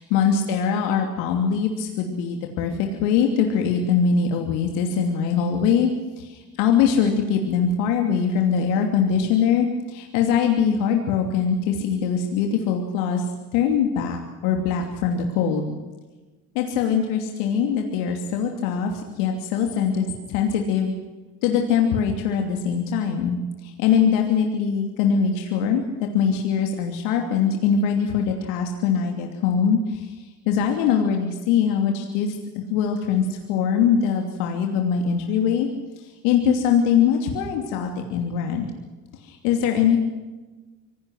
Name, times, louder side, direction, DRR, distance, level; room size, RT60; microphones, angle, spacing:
voice 1, 0.0-5.9 6.2-15.8 16.5-20.9 21.4-25.8 26.1-35.7 36.0-38.7 39.2-40.0, left 7 dB, 75° left, 3 dB, 2.9 m, -22 dB
25.0 x 18.5 x 6.4 m, 1.2 s
hypercardioid pair, 65°, 45 cm